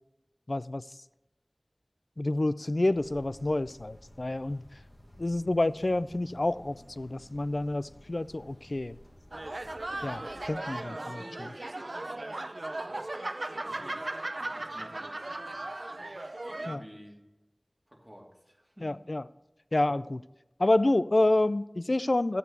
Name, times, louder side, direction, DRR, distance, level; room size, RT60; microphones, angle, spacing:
voice 1, 0.5-0.8 2.2-4.6 5.2-9.0 10.0-11.5 16.7-16.8 18.8-19.2 19.7-20.2 20.6-22.4, left 2 dB, 75° left, 16 dB, 0.3 m, -28 dB
sound 1, 2.9-10.5, left 1 dB, 45° left, 1.7 m, -54 dB
sound 2, 9.3-16.8, right 2 dB, 75° right, 0.5 m, -37 dB
voice 2, 13.7-17.2 17.9-19.0, equal, 5° right, -2 dB, 2.5 m, -53 dB
13.0 x 8.1 x 4.4 m, 1.0 s
wide cardioid pair, 40°, 0 cm